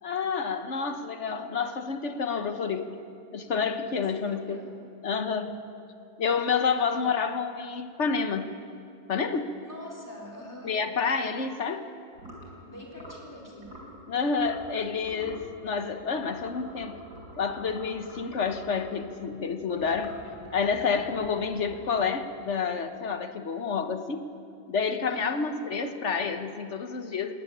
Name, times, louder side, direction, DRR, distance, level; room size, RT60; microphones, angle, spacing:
voice 1, 0.0-3.0 3.3-4.6 5.0-5.5 6.2-8.5 9.1-9.6 10.6-11.9 14.1-17.0 17.4-20.2 20.5-24.2 24.7-27.3, left 5 dB, 45° left, 8 dB, 1.1 m, -29 dB
voice 2, 4.3-4.8 9.6-10.8 12.6-13.8 25.1-25.5, left 1 dB, 10° left, -1 dB, 4.0 m, -44 dB
sound 1, 12.1-12.5 12.9-13.3 13.6-13.9 14.4-14.7 15.0-15.5 16.2-19.0 19.7-22.5, right 1 dB, 60° right, 5.1 m, -47 dB
19.0 x 16.5 x 10.0 m, 2.5 s
omnidirectional pair, 2.1 m